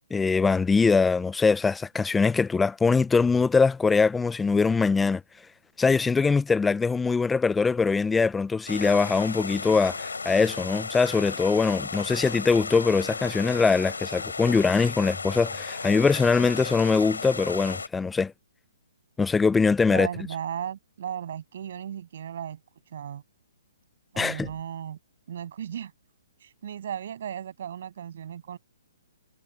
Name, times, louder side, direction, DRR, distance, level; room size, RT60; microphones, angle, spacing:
voice 1, 0.1-5.2 5.8-18.3 19.2-20.1 24.2-24.5, left 4 dB, 10° left, 0.7 m, -22 dB
sound 1, 8.7-17.9, left 4 dB, 85° left, 4.6 m, -34 dB
voice 2, 19.9-22.6 22.9-23.2 24.1-25.0 25.3-25.9 26.4-28.6, right 9 dB, 60° right, 7.4 m, -35 dB
hypercardioid pair, 135°, 0 cm